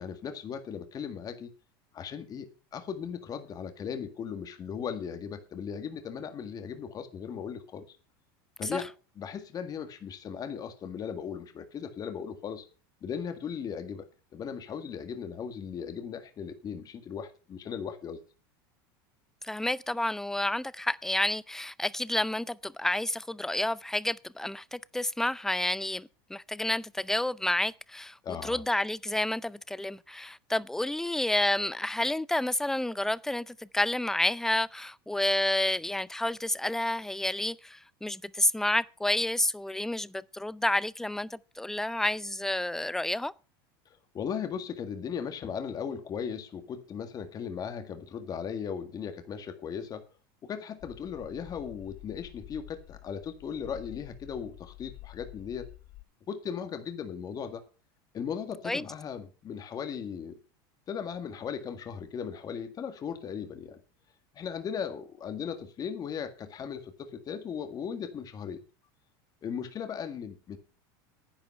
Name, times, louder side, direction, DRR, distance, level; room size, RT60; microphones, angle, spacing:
voice 1, 0.0-1.5 1.9-8.0 8.6-12.7 13.0-14.0 14.3-18.2 28.2-28.6 44.1-50.1 50.4-55.7 56.3-57.6 58.1-60.4 60.9-63.8 64.3-68.6 69.4-70.6, left 7 dB, 35° left, 1.8 m, -37 dB
voice 2, 19.4-28.2 28.4-43.3 58.6-58.8, left 1 dB, 5° left, 0.5 m, -30 dB
sound 1, 50.8-56.0, left 17 dB, 50° left, 0.8 m, -49 dB
10.5 x 9.2 x 5.6 m
supercardioid pair, 115°, 12 cm